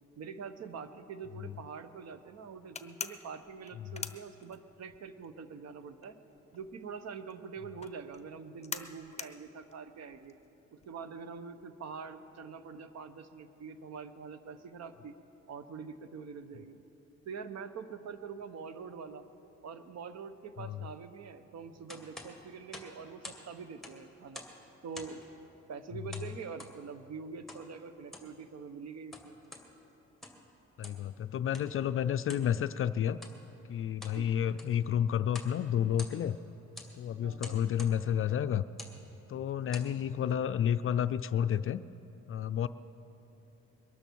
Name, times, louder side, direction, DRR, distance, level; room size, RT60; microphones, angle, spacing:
voice 1, 0.2-6.2 6.5-10.3 10.7-15.1 15.5-16.8 17.2-19.2 19.6-24.4 24.8-25.2 25.7-29.3 34.1-34.3 37.2-37.6, right 5 dB, 60° right, 11 dB, 1.0 m, -45 dB
sound 1, 2.8-5.0 5.2-11.1, left 5 dB, 20° left, 0.8 m, -43 dB
sound 2, 21.9-23.5 23.7-24.6 24.9-25.3 26.1-26.8 27.5-27.7 28.0-28.3 28.9-29.7 30.1-30.5 30.8-31.1 31.5-31.7 32.3-32.5 33.1-33.4 33.8-34.2 34.5-34.8 35.3-35.6 35.8-36.4 36.8-36.9 37.4-38.0 38.7-39.0 39.5-39.9, left 2 dB, ahead, 2.1 m, -47 dB
voice 2, 30.8-33.2 33.7-36.4 37.0-38.6 39.3-41.8 42.3-42.7, left 9 dB, 45° left, 12 dB, 0.4 m, -30 dB
22.5 x 12.5 x 4.6 m, 3.0 s
cardioid pair, 95°, 30 cm